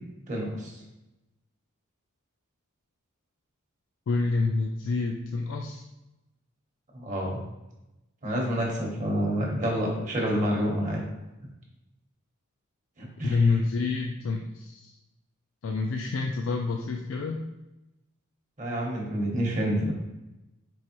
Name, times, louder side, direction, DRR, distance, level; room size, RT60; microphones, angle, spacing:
voice 1, 0.3-0.7 6.9-7.4 8.2-11.0 13.0-13.5 18.6-19.9, equal, 35° right, -2 dB, 0.9 m, -28 dB
voice 2, 4.1-5.8 13.2-14.9 15.6-17.4, left 3 dB, 60° left, 2 dB, 0.3 m, -27 dB
4.6 x 3.0 x 2.9 m, 0.96 s
head